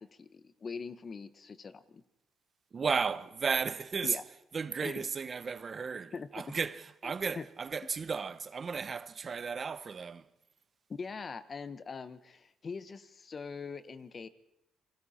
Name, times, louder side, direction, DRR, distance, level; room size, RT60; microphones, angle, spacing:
voice 1, 0.0-2.0 4.0-4.2 4.8-5.0 6.1-6.4 7.3-7.5 10.9-14.3, left 5 dB, 40° left, 1.2 m, -42 dB
voice 2, 2.7-4.2 4.5-10.2, right 5 dB, 40° right, 0.8 m, -34 dB
29.0 x 22.0 x 4.3 m
cardioid pair, 90°, 0 cm